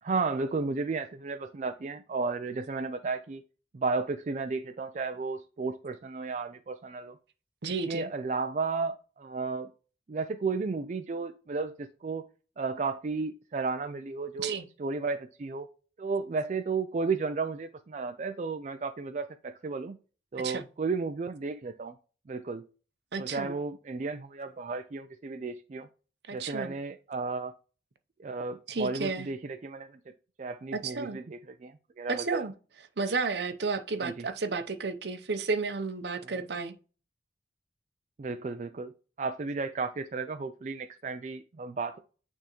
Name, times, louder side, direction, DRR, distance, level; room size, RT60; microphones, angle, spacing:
voice 1, 0.0-3.4 3.7-7.2 7.9-9.7 10.1-12.2 12.6-14.5 14.8-15.7 16.0-20.0 20.3-22.0 22.3-22.6 23.2-25.9 26.3-27.5 28.2-30.0 30.4-32.5 34.0-34.3 36.2-36.3 38.2-38.9 39.2-42.0, right 4 dB, 40° right, 0.4 m, -33 dB
voice 2, 7.6-8.1 14.4-14.6 20.3-20.6 23.1-23.5 26.3-26.7 28.7-29.3 30.7-31.2 32.1-32.5 33.0-36.7, right 4 dB, 65° right, 0.7 m, -32 dB
9.0 x 3.5 x 3.0 m
head